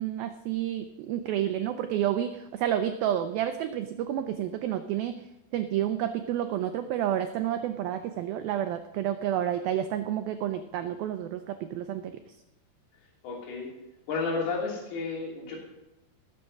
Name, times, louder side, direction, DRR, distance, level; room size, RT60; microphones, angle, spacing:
voice 1, 0.0-5.2 5.5-12.1, right 11 dB, 85° right, 8 dB, 2.1 m, -30 dB
voice 2, 13.2-13.7 14.1-15.6, left 4 dB, 65° left, -3 dB, 4.8 m, -32 dB
18.0 x 7.5 x 5.4 m, 0.91 s
omnidirectional pair, 5.0 m